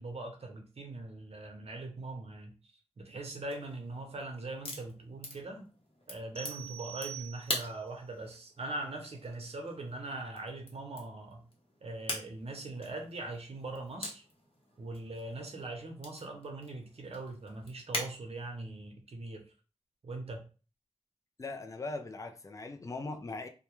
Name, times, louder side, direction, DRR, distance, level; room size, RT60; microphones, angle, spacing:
voice 1, 0.0-2.5 3.0-5.6 6.1-11.4 11.8-14.2 14.8-19.4 20.0-20.4, right 2 dB, 60° right, 0.7 m, -41 dB
sound 1, 3.5-18.1, left 1 dB, 50° left, 0.8 m, -44 dB
sound 2, 6.4-7.9, right 10 dB, 20° right, 0.5 m, -46 dB
voice 2, 21.4-23.5, left 3 dB, 30° left, 0.4 m, -40 dB
2.2 x 2.1 x 3.0 m
wide cardioid pair, 75°, 12 cm